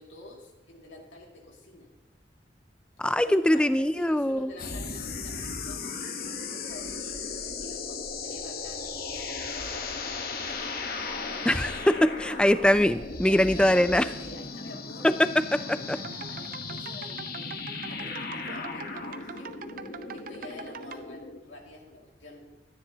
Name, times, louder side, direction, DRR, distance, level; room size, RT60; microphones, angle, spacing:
voice 1, 0.0-1.9 3.0-11.9 12.2-12.4 13.3-22.5, left 2 dB, 90° left, 0 dB, 2.2 m, -48 dB
voice 2, 3.0-4.5 11.5-14.0 15.5-16.0, left 1 dB, 5° left, 13 dB, 0.3 m, -23 dB
sound 1, 4.6-21.4, left 4 dB, 50° left, 1.1 m, -36 dB
sound 2, 16.0-21.0, right 5 dB, 50° right, 0.5 m, -43 dB
13.0 x 10.0 x 2.8 m, 1.2 s
head